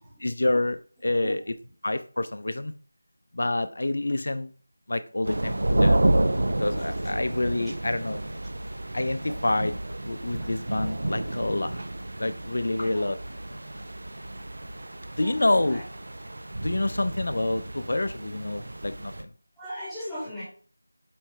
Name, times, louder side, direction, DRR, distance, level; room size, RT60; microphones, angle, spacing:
voice 1, 0.2-1.4 1.8-2.7 3.3-4.5 4.9-6.0 6.6-8.2 8.9-9.7 10.0-11.8 12.2-13.2 15.2-15.8 16.6-19.3, left 2 dB, 60° left, 11 dB, 0.6 m, -27 dB
sound 1, 5.2-19.2, right 1 dB, 65° right, 0.8 m, -30 dB
voice 2, 12.7-13.1 15.0-15.8 19.6-20.4, equal, ahead, -14 dB, 1.9 m, -39 dB
8.7 x 3.1 x 4.7 m, 0.41 s
figure-of-eight pair, 170°, 0 cm